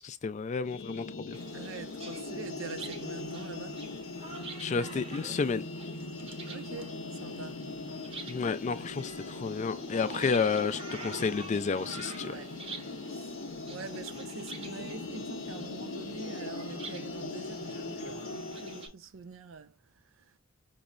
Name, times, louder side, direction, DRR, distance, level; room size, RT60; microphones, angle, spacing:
voice 1, 0.0-1.4 4.6-5.6 8.3-12.3, left 5 dB, 35° left, 0.3 m, -31 dB
sound 1, 0.6-18.9, left 3 dB, 90° left, 0.6 m, -40 dB
sound 2, 1.3-18.9, right 3 dB, 30° right, 0.6 m, -47 dB
voice 2, 1.5-3.9 6.4-7.7 8.7-8.9 10.1-10.4 12.2-12.5 13.1-13.4 13.7-20.4, right 5 dB, 85° right, 0.5 m, -45 dB
5.3 x 2.0 x 2.4 m
head